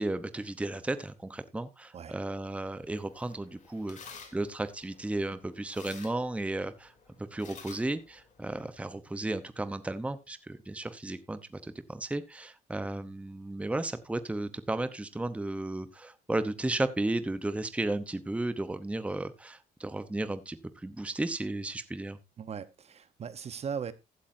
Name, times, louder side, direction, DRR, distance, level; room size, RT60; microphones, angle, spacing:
voice 1, 0.0-6.9 7.2-22.2, right 2 dB, 5° right, 0.9 m, -34 dB
sound 1, 2.8-8.9, left 5 dB, 45° left, 3.1 m, -53 dB
voice 2, 22.4-23.9, right 7 dB, 40° right, 1.0 m, -38 dB
15.0 x 8.7 x 2.7 m
cardioid pair, 110°, 17 cm